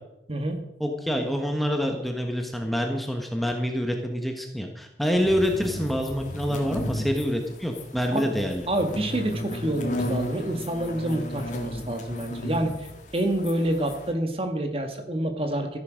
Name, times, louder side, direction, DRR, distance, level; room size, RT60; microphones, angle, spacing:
voice 1, 0.3-0.6 8.1-8.3 8.7-15.8, right 1 dB, 30° right, 5 dB, 1.6 m, -28 dB
voice 2, 0.8-8.7, equal, ahead, 3 dB, 1.3 m, -26 dB
sound 1, 5.1-14.1, left 1 dB, 45° left, 1.9 m, -34 dB
14.0 x 11.0 x 5.2 m, 0.86 s
head